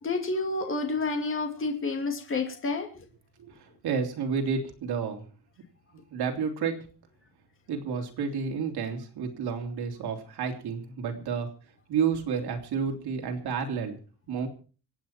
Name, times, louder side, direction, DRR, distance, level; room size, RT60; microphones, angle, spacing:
voice 1, 0.0-3.0, left 3 dB, 30° left, 4 dB, 2.6 m, -29 dB
voice 2, 3.4-5.3 6.1-6.8 7.7-11.5 11.9-14.0 14.3-14.5, right 6 dB, 75° right, 3 dB, 3.4 m, -30 dB
26.0 x 9.1 x 4.4 m, 0.38 s
cardioid pair, 165°, 39 cm